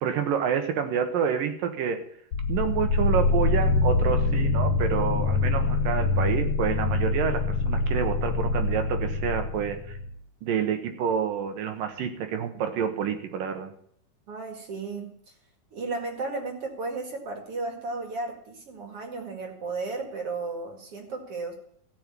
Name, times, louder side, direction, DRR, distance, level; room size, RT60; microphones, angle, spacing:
voice 1, 0.0-2.0 2.5-10.0 10.4-13.7, right 7 dB, 80° right, 7 dB, 3.1 m, -28 dB
sound 1, 2.3-10.1, left 3 dB, 55° left, 1.7 m, -25 dB
voice 2, 14.3-15.1 15.7-21.5, right 3 dB, 45° right, 3 dB, 2.7 m, -34 dB
15.0 x 5.7 x 9.6 m, 0.65 s
omnidirectional pair, 4.0 m